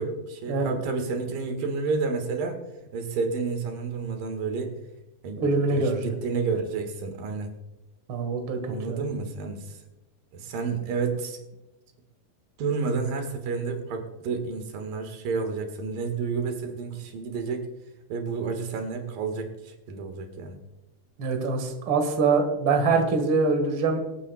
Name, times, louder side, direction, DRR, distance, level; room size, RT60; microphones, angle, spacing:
voice 1, 0.0-2.6 2.9-4.7 5.2-7.5 8.7-9.8 10.3-11.4 12.6-17.7 18.1-20.6, right 4 dB, 90° right, 5 dB, 3.2 m, -30 dB
voice 2, 5.4-6.1 8.1-9.0 21.2-24.0, right 4 dB, 45° right, 4 dB, 2.1 m, -24 dB
26.0 x 8.8 x 2.3 m, 1.0 s
omnidirectional pair, 3.9 m